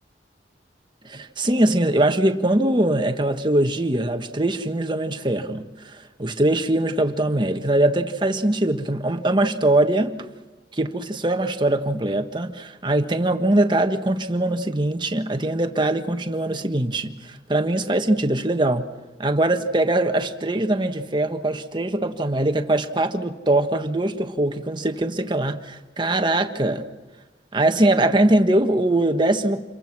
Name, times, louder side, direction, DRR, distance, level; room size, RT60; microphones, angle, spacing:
voice 1, 1.0-10.2 10.7-18.9 19.2-26.9 27.5-29.6, right 1 dB, 25° right, 7 dB, 1.5 m, -22 dB
28.5 x 23.0 x 6.2 m, 1.2 s
head